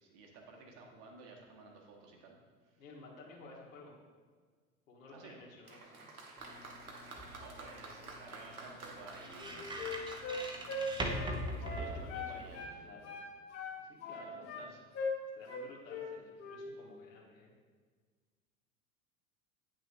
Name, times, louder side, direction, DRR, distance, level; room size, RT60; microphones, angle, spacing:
voice 1, 0.0-2.4 2.7-2.8 5.1-5.4 7.4-9.7 11.5-12.9 14.2-14.8, right 3 dB, 55° right, 0 dB, 1.5 m, -54 dB
voice 2, 2.8-3.9 4.9-6.1 11.6-13.1 13.8-14.7 15.3-17.5, left 3 dB, 65° left, -2 dB, 1.8 m, -54 dB
Applause, 5.7-12.1 13.0-13.1, right 3 dB, 85° right, 1.1 m, -51 dB
sound 1, 6.4-12.6, right 1 dB, 10° right, 0.8 m, -42 dB
Wind instrument woodwind instrument, 9.3-12.8 13.0-14.7 14.9-15.2 15.5-16.1 16.4-16.6, left 3 dB, 35° left, 1.9 m, -40 dB
9.1 x 6.1 x 2.7 m, 1.5 s
figure-of-eight pair, 80°, 43 cm